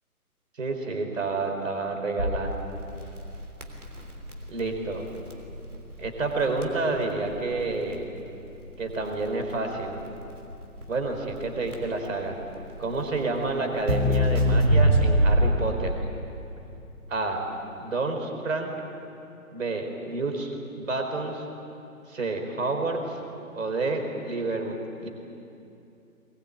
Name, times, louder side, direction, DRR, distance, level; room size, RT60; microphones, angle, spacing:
voice 1, 0.6-2.5 4.5-5.0 6.0-8.0 8.8-9.9 10.9-12.3 12.8-16.0 17.1-17.4 17.8-18.7 19.5-21.4 22.1-23.2 23.5-24.8 25.0-25.1, right 3 dB, 60° right, 4 dB, 4.4 m, -29 dB
Crackle, 2.2-15.8, equal, 75° right, 3.6 m, -26 dB
22.0 x 21.0 x 8.9 m, 2.8 s
figure-of-eight pair, 135°, 44 cm